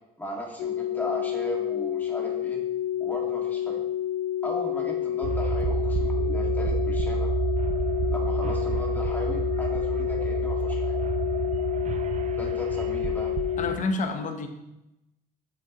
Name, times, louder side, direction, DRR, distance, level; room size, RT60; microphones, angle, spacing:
voice 1, 0.2-2.6 3.0-3.8 4.4-7.3 8.1-11.0 12.4-13.3, equal, 10° left, -2 dB, 2.0 m, -37 dB
sound 1, 0.6-13.8, left 11 dB, 80° left, 0.4 m, -29 dB
sound 2, 5.2-13.8, right 5 dB, 45° right, 0.5 m, -29 dB
voice 2, 13.6-14.5, left 3 dB, 50° left, 5 dB, 0.9 m, -28 dB
7.5 x 7.4 x 3.0 m, 0.92 s
cardioid pair, 110°, 17 cm